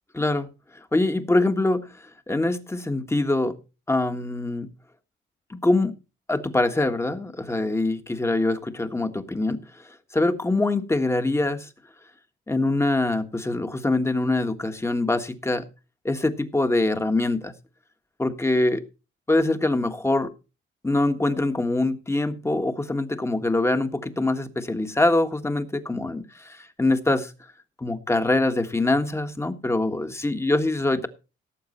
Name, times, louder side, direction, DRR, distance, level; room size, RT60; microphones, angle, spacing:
voice 1, 0.1-0.5 0.9-1.9 2.3-3.5 3.9-4.7 5.5-5.9 6.3-9.6 10.1-11.7 12.5-15.6 16.0-17.5 18.2-18.8 19.3-20.3 20.8-27.3 27.8-31.1, left 2 dB, 15° left, 8 dB, 1.5 m, -24 dB
17.5 x 7.3 x 4.3 m, 0.32 s
cardioid pair, 90°, 20 cm